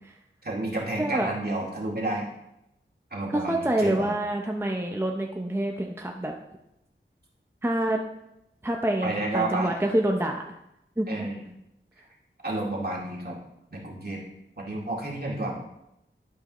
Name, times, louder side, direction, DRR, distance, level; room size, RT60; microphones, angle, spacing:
voice 1, 0.4-2.3 3.1-4.1 9.0-9.7 11.1-11.4 12.4-13.3 13.7-14.2 14.6-15.5, right 2 dB, 50° right, -3 dB, 2.2 m, -30 dB
voice 2, 1.0-1.3 3.3-6.3 7.6-8.0 8.6-10.4 11.0-11.3, right 1 dB, 10° right, 1 dB, 0.7 m, -26 dB
12.0 x 4.7 x 3.1 m, 0.85 s
wide cardioid pair, 45°, 21 cm